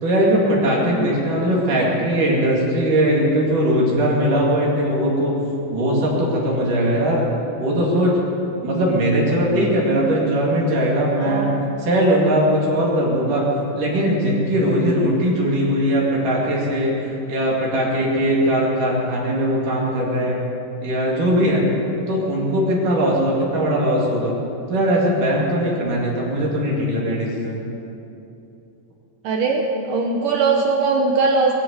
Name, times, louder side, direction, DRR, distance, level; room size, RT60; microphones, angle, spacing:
voice 1, 0.0-5.3 5.7-7.3 7.6-8.3 8.6-11.5 11.8-13.5 13.7-20.4 20.8-21.7 22.1-24.4 24.7-27.6, equal, 50° right, -3 dB, 3.5 m, -20 dB
voice 2, 11.2-11.6 29.2-29.6 29.9-31.5, right 4 dB, 75° right, 1 dB, 1.9 m, -20 dB
22.0 x 7.8 x 8.0 m, 2.8 s
omnidirectional pair, 5.2 m